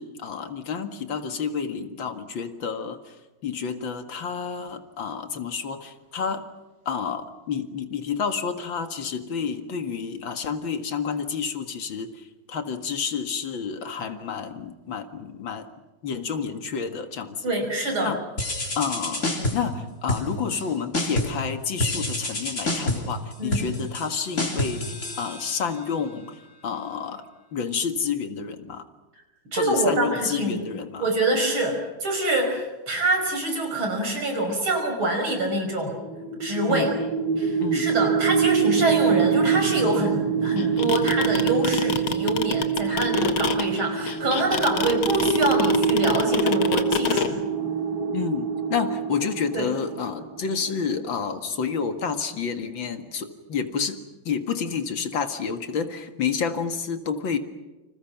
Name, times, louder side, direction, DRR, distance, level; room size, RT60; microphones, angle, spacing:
voice 1, 0.0-3.2 3.4-6.4 6.9-15.7 16.0-17.4 18.0-18.2 18.8-27.2 27.5-28.8 29.5-31.1 36.7-36.9 37.6-37.9 48.1-54.0 54.3-57.4, left 6 dB, 70° left, 7 dB, 2.5 m, -29 dB
voice 2, 17.4-18.1 23.4-23.7 29.5-30.6 31.0-36.0 36.4-36.9 37.4-47.4 49.5-49.7, right 2 dB, 85° right, 4 dB, 6.3 m, -25 dB
sound 1, 18.4-19.7 20.1-20.7 20.9-21.4 21.8-25.8, left 1 dB, 35° left, 3.9 m, -28 dB
sound 2, 35.9-50.9, right 6 dB, 60° right, 3.9 m, -25 dB
sound 3, 40.6-47.3, left 6 dB, 90° left, 2.4 m, -25 dB
29.5 x 26.5 x 6.0 m, 1.1 s
omnidirectional pair, 2.2 m